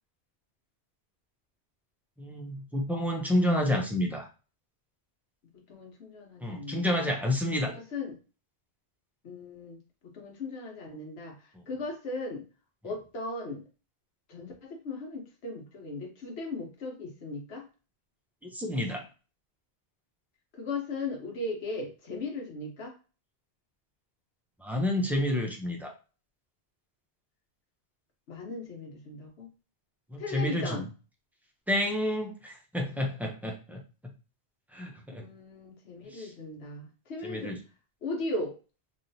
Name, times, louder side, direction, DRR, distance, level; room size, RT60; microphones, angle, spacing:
voice 1, 2.2-4.3 6.4-7.7 18.5-19.1 24.6-25.9 30.1-30.8 31.7-33.8 34.7-35.2 36.1-36.3 37.2-37.6, left 1 dB, ahead, 0 dB, 0.4 m, -29 dB
voice 2, 5.7-7.1 7.6-8.2 9.2-9.8 10.0-12.4 12.8-13.6 14.3-17.7 20.5-22.9 28.3-29.5 30.2-30.9 35.2-37.5 38.0-38.5, left 2 dB, 75° left, 0 dB, 1.2 m, -37 dB
3.1 x 2.6 x 2.7 m, 0.33 s
omnidirectional pair, 1.1 m